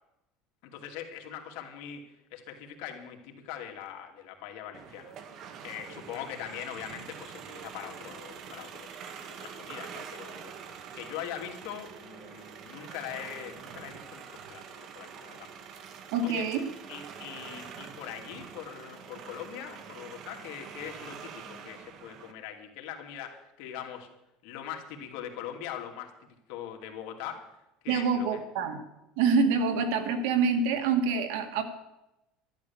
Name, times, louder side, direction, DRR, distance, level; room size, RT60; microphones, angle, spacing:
voice 1, 0.6-2.0 2.3-9.0 9.3-10.5 10.9-15.9 16.2-16.5 16.9-24.1 24.4-27.6 27.8-28.4, left 9 dB, 65° left, 2 dB, 2.6 m, -42 dB
sound 1, 4.7-22.3, right 7 dB, 45° right, 1.5 m, -45 dB
voice 2, 16.1-16.6 27.9-28.8 29.2-31.6, right 5 dB, 75° right, 7 dB, 2.2 m, -26 dB
12.0 x 12.0 x 7.2 m, 0.92 s
cardioid pair, 145°, 0 cm